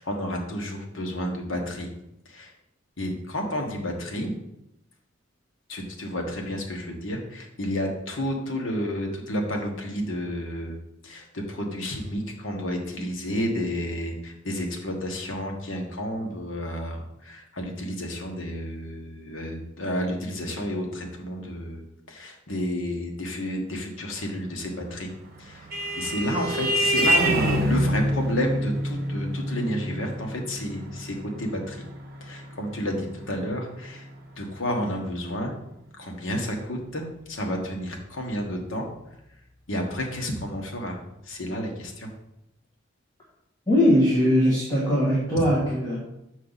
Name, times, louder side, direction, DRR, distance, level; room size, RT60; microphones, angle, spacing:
voice 1, 0.0-1.9 2.2-2.5 3.0-4.3 5.7-10.8 11.0-21.8 22.1-25.1 25.4-25.7 26.0-31.9 32.2-34.1 34.4-35.5 36.0-38.9 39.7-41.0 41.2-42.1 45.4-45.5, equal, 75° left, 2 dB, 1.3 m, -31 dB
Vehicle horn car horn honking, 25.1-34.1, equal, 50° right, 1.0 m, -27 dB
voice 2, 43.7-46.0, equal, 20° left, -6 dB, 1.5 m, -20 dB
7.0 x 4.7 x 4.0 m, 0.85 s
head